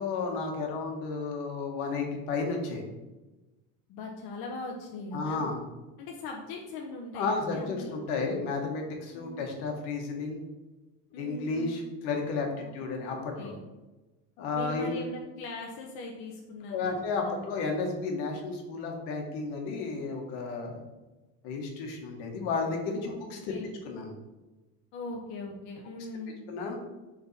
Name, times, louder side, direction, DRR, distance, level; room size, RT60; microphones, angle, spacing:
voice 1, 0.0-2.8 5.1-5.6 7.1-10.4 11.2-13.5 14.4-15.0 16.7-20.8 21.4-23.5 23.8-24.1 26.5-26.8, left 4 dB, 85° left, 2 dB, 1.5 m, -32 dB
voice 2, 3.9-5.4 6.0-8.0 9.1-9.4 11.1-11.8 12.6-12.7 13.4-13.6 14.5-16.9 17.2-17.4 23.1-23.8 24.9-26.4, left 2 dB, 65° left, 0 dB, 0.9 m, -40 dB
6.9 x 3.9 x 4.2 m, 1.1 s
cardioid pair, 155°, 41 cm